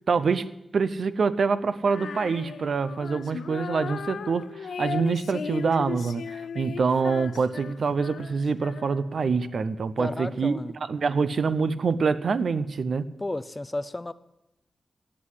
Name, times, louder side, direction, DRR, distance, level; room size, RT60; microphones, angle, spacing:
voice 1, 0.1-10.6 10.9-13.1, right 5 dB, 60° right, 14 dB, 0.7 m, -26 dB
Female singing, 1.8-9.2, left 6 dB, 80° left, 0.5 m, -37 dB
voice 2, 10.0-10.7 13.2-14.1, left 2 dB, 15° left, 14 dB, 0.5 m, -32 dB
17.0 x 7.6 x 9.8 m, 0.89 s
wide cardioid pair, 160°, 0 cm